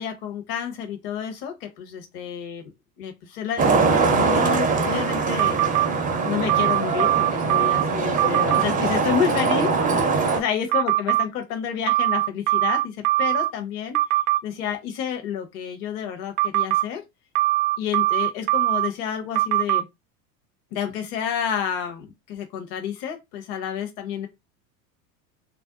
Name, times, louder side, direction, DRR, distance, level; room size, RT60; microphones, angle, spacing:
voice 1, 0.0-2.6 3.0-5.6 6.2-14.0 14.4-17.0 17.8-19.9 20.7-24.3, left 8 dB, 45° left, 0.9 m, -29 dB
Traffic noise roadway noise, 3.6-10.4, right 4 dB, 15° right, 0.5 m, -22 dB
sound 1, 5.4-5.9 6.5-7.8 8.2-8.6 10.7-11.3 11.9-13.5 13.9-14.4 16.4-16.8 17.4-18.9 19.4-19.8, right 18 dB, 65° right, 0.5 m, -21 dB
2.5 x 2.0 x 3.7 m
hypercardioid pair, 85°, 50 cm